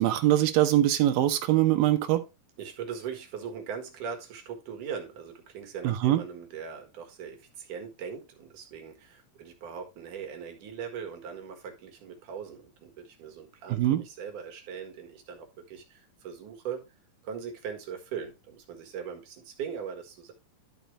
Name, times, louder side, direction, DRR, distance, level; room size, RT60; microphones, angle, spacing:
voice 1, 0.0-2.2 5.8-6.2 13.7-14.0, right 13 dB, 85° right, 2.7 m, -23 dB
voice 2, 2.6-16.9 17.2-20.3, right 7 dB, 70° right, 3.1 m, -40 dB
12.0 x 5.2 x 3.2 m
omnidirectional pair, 3.9 m